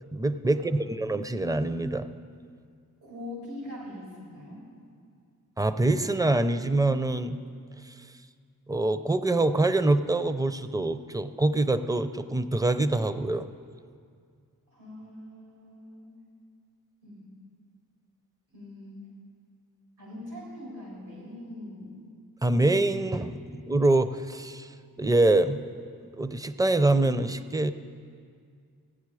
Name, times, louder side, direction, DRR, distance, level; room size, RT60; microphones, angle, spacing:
voice 1, 0.0-2.1 5.6-7.4 8.7-13.4 22.4-24.7 25.0-25.6 26.2-27.7, right 2 dB, 10° right, 11 dB, 0.5 m, -25 dB
voice 2, 0.5-1.0 3.0-4.6 14.7-16.1 17.0-17.2 18.5-19.1 20.0-21.9, left 1 dB, 90° right, -6 dB, 3.8 m, -42 dB
16.0 x 10.0 x 4.8 m, 2.2 s
cardioid pair, 40°, 37 cm